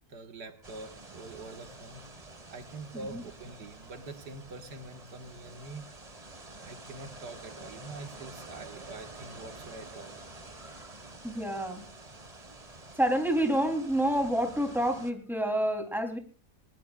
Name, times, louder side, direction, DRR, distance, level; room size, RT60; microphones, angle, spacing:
voice 1, 0.1-2.1 2.5-5.9 6.6-10.1, right 3 dB, 90° right, 6 dB, 2.2 m, -45 dB
sound 1, 0.6-15.1, right 2 dB, 25° right, 1.7 m, -48 dB
voice 2, 10.6-11.0 11.2-11.8 13.0-16.2, right 1 dB, ahead, 4 dB, 3.3 m, -29 dB
21.0 x 19.5 x 2.4 m, 0.34 s
omnidirectional pair, 1.7 m